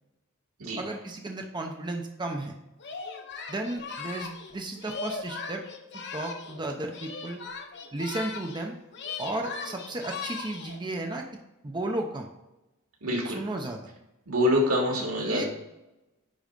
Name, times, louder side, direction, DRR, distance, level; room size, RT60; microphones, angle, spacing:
voice 1, 0.7-2.6 3.5-5.6 6.1-7.4 7.9-8.8 9.2-11.3 11.6-12.3 13.2-13.9 15.2-15.4, right 2 dB, 20° right, 2 dB, 0.7 m, -34 dB
Singing, 2.8-6.6 6.9-8.7 8.9-10.8, left 5 dB, 55° left, 1.1 m, -38 dB
voice 2, 13.0-13.4 14.3-15.5, left 1 dB, 85° right, -2 dB, 2.9 m, -25 dB
10.0 x 3.9 x 5.3 m, 0.95 s
head